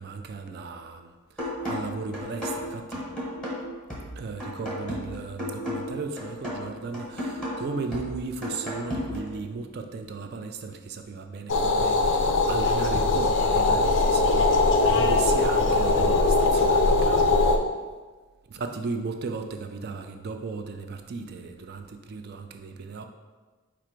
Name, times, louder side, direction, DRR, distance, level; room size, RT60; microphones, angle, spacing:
voice 1, 0.0-3.1 4.2-17.5 18.5-23.0, right 4 dB, 45° right, 6 dB, 0.3 m, -36 dB
sound 1, 1.4-9.4, left 1 dB, 5° left, 1.0 m, -34 dB
sound 2, 11.5-17.6, left 3 dB, 55° left, 0.4 m, -21 dB
4.7 x 2.5 x 4.4 m, 1.3 s
head